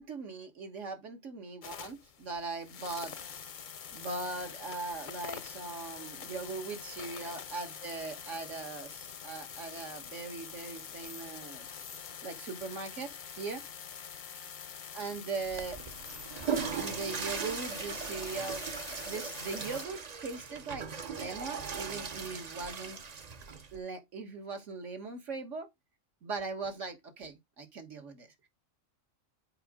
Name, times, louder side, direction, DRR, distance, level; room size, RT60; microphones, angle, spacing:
voice 1, 0.0-3.1 3.9-11.7 12.2-13.6 14.9-15.8 16.7-18.6 19.1-23.0 23.7-25.7 26.2-28.5, right 4 dB, 65° right, 1.9 m, -40 dB
sound 1, 1.6-19.9, left 7 dB, 50° left, 0.7 m, -45 dB
Water / Toilet flush, 15.4-23.8, right 6 dB, 40° right, 0.7 m, -38 dB
7.8 x 4.8 x 3.7 m
omnidirectional pair, 1.3 m